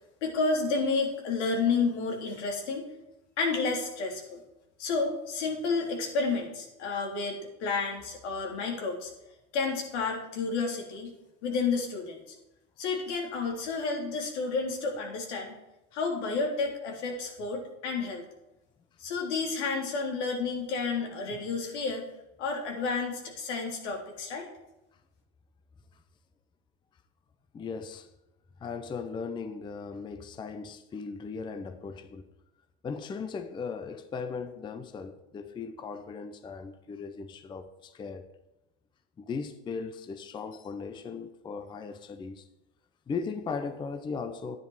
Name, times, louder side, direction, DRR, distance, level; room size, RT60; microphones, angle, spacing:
voice 1, 0.2-2.9 3.4-4.4 4.8-9.1 9.5-11.1 11.4-12.4 12.8-15.5 15.9-18.2 19.0-22.1 22.4-24.5, left 4 dB, 75° left, 3.6 m, -31 dB
voice 2, 27.5-28.1 28.6-32.3 32.8-38.3 39.2-42.5 43.1-44.6, left 5 dB, 15° left, 0.5 m, -37 dB
11.0 x 9.9 x 4.8 m
supercardioid pair, 125°, 35 cm